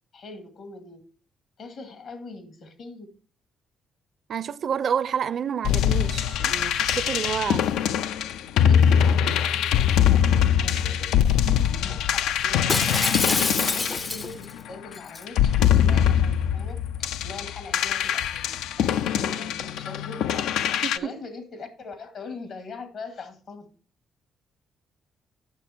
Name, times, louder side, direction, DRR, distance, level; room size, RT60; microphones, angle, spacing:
voice 1, 0.1-1.0 1.6-3.1 7.5-7.7 8.5-16.8 17.2-18.5 18.8-20.4 20.9-23.7, left 3 dB, 65° left, 2.4 m, -41 dB
voice 2, 4.3-7.7 11.4-11.8 15.6-15.7 20.8-21.2, right 8 dB, 60° right, 0.4 m, -29 dB
sound 1, 5.6-14.7 15.3-21.0, left 9 dB, 85° left, 0.4 m, -23 dB
Shatter, 12.7-14.5 14.9-15.2, left 3 dB, 30° left, 0.4 m, -25 dB
9.0 x 6.4 x 4.5 m
cardioid pair, 90°, 0 cm